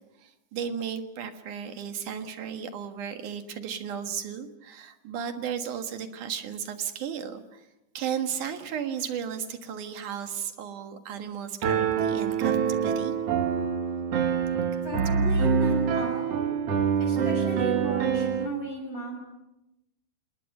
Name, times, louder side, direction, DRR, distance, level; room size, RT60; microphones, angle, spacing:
voice 1, 0.2-7.7 7.9-13.1, right 8 dB, 75° right, 7 dB, 3.1 m, -34 dB
Piano, 11.6-18.5, right 7 dB, 55° right, 2.3 m, -25 dB
voice 2, 14.8-16.4 17.0-19.2, right 1 dB, 25° left, -1 dB, 7.1 m, -35 dB
28.0 x 20.0 x 6.7 m, 0.92 s
omnidirectional pair, 3.7 m